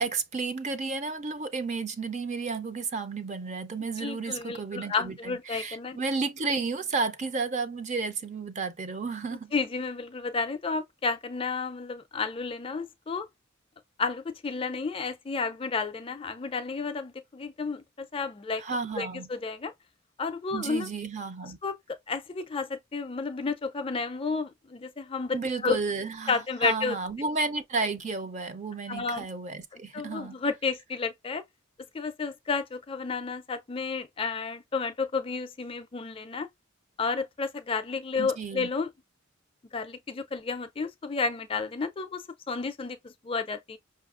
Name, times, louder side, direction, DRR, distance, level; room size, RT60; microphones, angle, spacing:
voice 1, 0.0-9.5 18.6-19.3 20.5-21.6 25.3-30.4 38.2-38.7, right 4 dB, 35° right, 0.5 m, -32 dB
voice 2, 4.0-6.0 9.5-13.3 14.0-18.6 19.0-19.7 20.2-20.9 21.4-21.8 22.1-25.4 25.6-25.8 26.3-26.9 28.9-29.3 29.7-31.4 31.9-36.5 37.0-38.9 39.7-43.8, left 4 dB, 25° left, 0.4 m, -31 dB
5.4 x 2.4 x 2.4 m
head